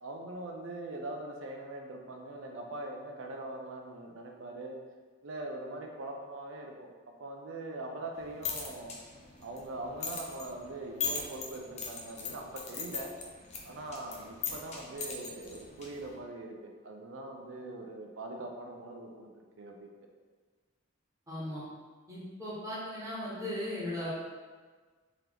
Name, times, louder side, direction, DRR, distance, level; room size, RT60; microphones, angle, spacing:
voice 1, 0.0-4.8 5.2-6.9 7.2-8.9 9.4-13.1 13.6-19.3 19.6-19.9, right 2 dB, 85° right, 2 dB, 0.5 m, -42 dB
sound 1, 8.1-16.2, left 5 dB, 35° left, 0.6 m, -40 dB
voice 2, 21.3-21.6 22.1-24.1, left 1 dB, 15° right, -8 dB, 1.0 m, -37 dB
3.7 x 2.9 x 3.4 m, 1.4 s
head